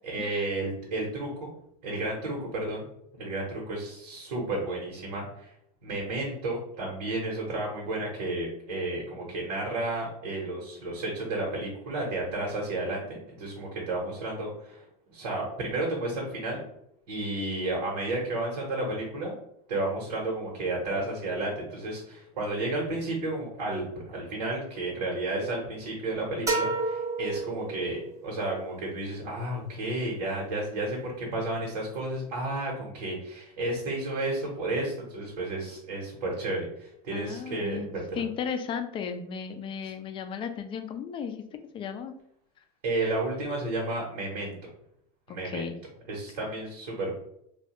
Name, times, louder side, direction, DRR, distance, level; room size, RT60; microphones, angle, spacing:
voice 1, 0.0-1.5 1.8-2.9 3.2-5.5 5.8-14.8 15.1-16.7 17.1-19.3 19.7-38.2 42.8-44.5 45.3-45.7 46.1-47.1, right 2 dB, 85° right, -3 dB, 1.1 m, -32 dB
sound 1, 26.5-28.2, right 3 dB, 15° right, 0.6 m, -30 dB
voice 2, 37.1-37.9 38.2-41.4 41.7-42.1 45.3-45.8, left 7 dB, 25° left, 8 dB, 0.4 m, -35 dB
3.1 x 2.3 x 2.9 m, 0.74 s
supercardioid pair, 125°, 20 cm